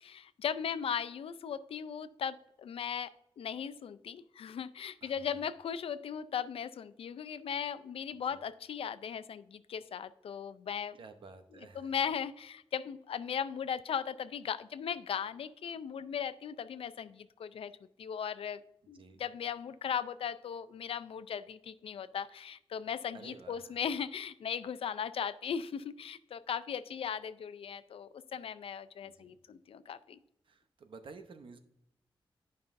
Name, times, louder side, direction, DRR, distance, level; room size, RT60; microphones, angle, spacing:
voice 1, 0.0-11.0 11.8-17.7 18.0-18.6 18.9-30.2, left 7 dB, 80° left, 14 dB, 0.4 m, -38 dB
voice 2, 5.0-5.4 8.3-8.4 11.0-11.9 18.9-19.2 23.1-23.8 29.0-29.4 30.4-31.6, right 4 dB, 60° right, 8 dB, 0.8 m, -52 dB
11.0 x 5.4 x 2.6 m, 0.78 s
wide cardioid pair, 150°, 10 cm